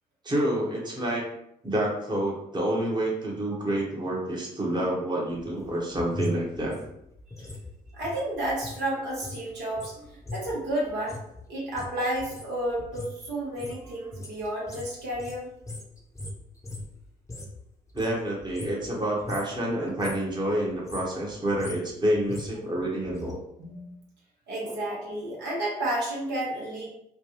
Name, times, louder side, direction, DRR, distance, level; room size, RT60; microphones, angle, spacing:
voice 1, 0.2-1.2 1.6-6.8 17.9-23.4 24.6-24.8, right 1 dB, 25° right, -3 dB, 1.1 m, -28 dB
sound 1, 5.3-8.9 9.1-17.6 17.9-19.0 19.2-19.6 19.9-20.3 20.7-23.3 23.6-23.7, left 1 dB, 15° left, 0.8 m, -40 dB
voice 2, 7.9-11.2 11.5-15.5 23.6-23.9 24.5-26.9, right 1 dB, 65° right, -5 dB, 1.1 m, -31 dB
3.3 x 2.2 x 3.0 m, 0.79 s
hypercardioid pair, 45°, 19 cm